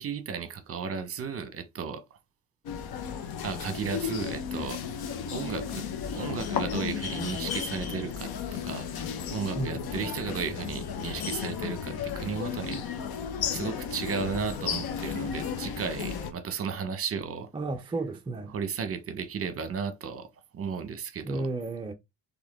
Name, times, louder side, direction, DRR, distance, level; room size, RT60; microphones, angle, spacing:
voice 1, 0.0-2.0 3.4-4.8 5.3-8.9 9.3-12.8 13.5-17.5 18.5-20.3 20.5-21.4, right 6 dB, 40° right, 0.9 m, -34 dB
sound 1, 2.7-16.3, left 7 dB, 75° left, 1.0 m, -34 dB
voice 2, 9.6-9.9 17.5-18.5 21.2-21.9, right 2 dB, 15° right, 0.4 m, -32 dB
4.3 x 3.5 x 3.5 m
cardioid pair, 145°, 37 cm